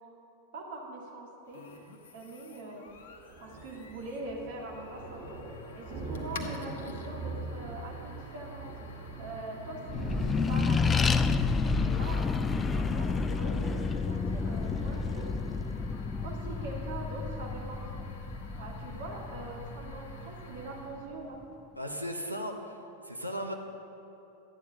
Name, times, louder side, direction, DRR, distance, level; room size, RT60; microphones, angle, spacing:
voice 1, 0.5-1.6 2.1-2.9 3.4-5.2 5.7-8.7 9.2-11.1 11.7-12.5 12.7-15.4 16.2-18.1 18.6-21.4, right 2 dB, 55° right, -2 dB, 2.4 m, -42 dB
sound 1, 1.5-21.1, right 1 dB, 60° left, 1.1 m, -48 dB
Thunder, 2.9-12.9, right 2 dB, 25° right, 2.8 m, -43 dB
Accelerating revving vroom, 9.9-20.8, left 4 dB, 15° left, 0.4 m, -30 dB
voice 2, 21.8-22.8 23.0-23.5, equal, 90° right, 2 dB, 1.1 m, -36 dB
12.5 x 9.5 x 5.5 m, 3.0 s
figure-of-eight pair, 90°, 0 cm